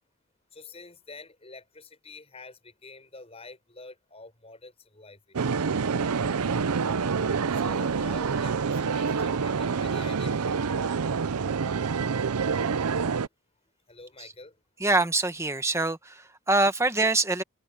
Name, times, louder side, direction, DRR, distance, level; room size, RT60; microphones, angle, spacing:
voice 1, 0.5-5.4 7.5-10.4 13.9-14.6, left 3 dB, 25° left, 6.6 m, -47 dB
sound 1, 5.3-13.3, right 5 dB, 90° right, 0.6 m, -27 dB
voice 2, 14.8-17.4, right 2 dB, 15° right, 1.2 m, -25 dB
open air
head